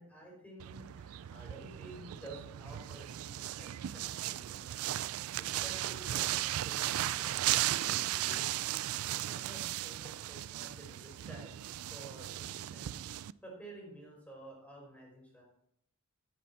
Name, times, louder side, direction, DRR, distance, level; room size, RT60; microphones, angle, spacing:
voice 1, 0.0-11.6 11.9-15.4, right 1 dB, 5° left, -2 dB, 5.1 m, -52 dB
sound 1, 0.6-13.3, right 14 dB, 75° right, 0.3 m, -36 dB
13.0 x 9.5 x 4.4 m, 0.76 s
head